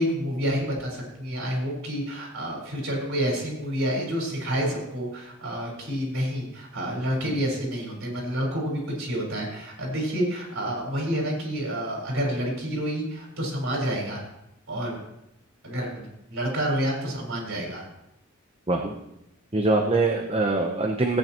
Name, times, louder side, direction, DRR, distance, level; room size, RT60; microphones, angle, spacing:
voice 1, 0.0-14.2 14.7-15.0 15.6-17.9, equal, 65° right, -2 dB, 4.5 m, -29 dB
voice 2, 19.5-21.2, right 2 dB, 25° right, 2 dB, 0.8 m, -23 dB
17.5 x 9.1 x 3.0 m, 0.83 s
head